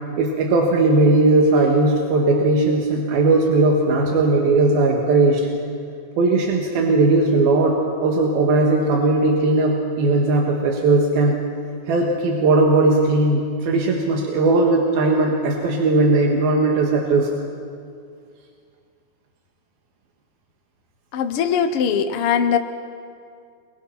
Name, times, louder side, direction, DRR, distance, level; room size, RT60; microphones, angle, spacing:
voice 1, 0.2-5.5 6.2-11.4 11.9-17.3, right 2 dB, 85° right, 0 dB, 3.5 m, -18 dB
voice 2, 21.1-22.6, left 7 dB, 70° left, 7 dB, 1.3 m, -20 dB
27.0 x 22.5 x 5.8 m, 2.3 s
omnidirectional pair, 4.2 m